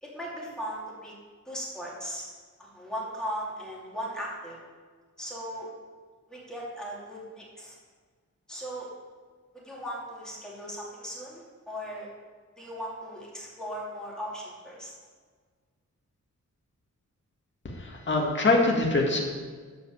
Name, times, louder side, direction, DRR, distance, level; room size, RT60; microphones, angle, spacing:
voice 1, 0.0-1.1 1.4-2.3 2.6-4.6 5.2-5.7 6.3-7.8 8.5-8.9 9.5-12.1 12.6-14.9, equal, ahead, -5 dB, 2.8 m, -38 dB
voice 2, 17.8-19.3, left 2 dB, 40° left, -1 dB, 2.0 m, -24 dB
12.5 x 5.2 x 7.3 m, 1.6 s
wide cardioid pair, 180°, 31 cm